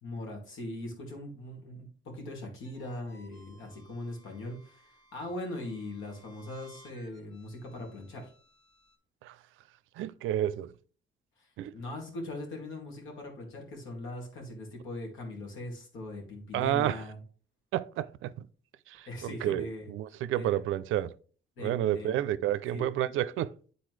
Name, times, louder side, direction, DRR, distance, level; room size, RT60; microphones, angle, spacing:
voice 1, 0.0-8.3 11.4-17.2 19.1-19.9 20.3-20.6 21.6-22.2 22.7-22.9, left 1 dB, 85° left, 2.3 m, -40 dB
sound 1, 2.6-9.0, right 1 dB, 40° left, 2.3 m, -61 dB
voice 2, 9.9-10.8 11.6-11.7 16.5-17.1 17.7-18.5 18.9-21.2 21.6-23.6, right 12 dB, 85° right, 0.4 m, -30 dB
9.2 x 4.0 x 3.1 m
cardioid pair, 90°, 20 cm